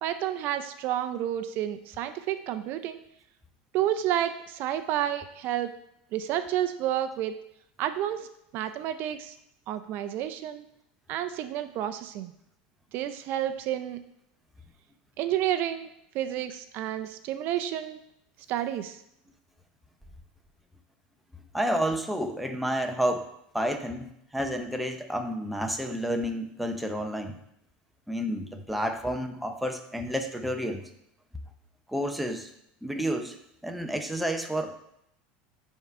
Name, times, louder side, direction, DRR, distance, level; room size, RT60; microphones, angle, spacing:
voice 1, 0.0-3.0 3.7-5.7 6.1-7.3 7.8-8.3 8.5-9.4 9.7-10.6 11.1-12.3 12.9-14.0 15.2-15.9 16.1-18.0 18.5-19.0, right 11 dB, 50° right, 10 dB, 0.5 m, -30 dB
voice 2, 21.5-23.3 23.5-27.4 28.1-30.8 31.9-32.5 32.8-33.4 33.6-34.8, equal, ahead, 4 dB, 0.6 m, -30 dB
8.8 x 3.7 x 4.7 m, 0.77 s
supercardioid pair, 140°, 4 cm